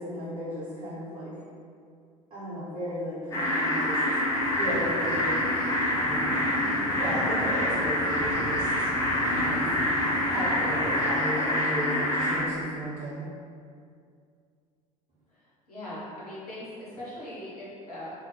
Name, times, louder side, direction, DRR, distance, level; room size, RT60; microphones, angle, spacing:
voice 1, 0.0-1.3 2.3-4.2 4.5-5.4 6.0-6.4 7.0-8.9 9.3-9.7 10.3-13.3, equal, 30° right, -12 dB, 0.8 m, -35 dB
sound 1, 3.3-12.4, left 1 dB, 20° left, 0.6 m, -26 dB
sound 2, 4.3-11.1, right 1 dB, 75° right, 0.6 m, -40 dB
voice 2, 15.7-18.1, left 1 dB, 80° left, -9 dB, 0.8 m, -40 dB
2.2 x 2.0 x 2.8 m, 2.3 s
figure-of-eight pair, 65°, 19 cm